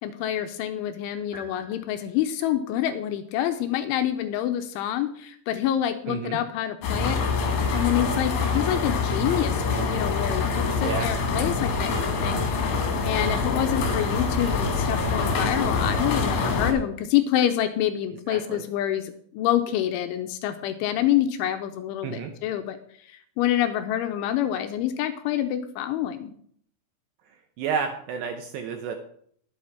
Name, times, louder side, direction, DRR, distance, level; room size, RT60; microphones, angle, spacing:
voice 1, 0.0-22.8 23.1-26.3, left 11 dB, 80° left, 8 dB, 3.0 m, -27 dB
sound 1, 1.3-2.6, left 2 dB, 15° left, 1.9 m, -48 dB
voice 2, 6.1-6.4 10.8-11.1 18.3-18.6 22.0-22.3 27.6-29.0, right 7 dB, 75° right, 5 dB, 2.6 m, -30 dB
sound 2, 6.8-16.7, left 4 dB, 60° left, 3.5 m, -25 dB
11.5 x 8.2 x 5.8 m, 0.62 s
omnidirectional pair, 5.9 m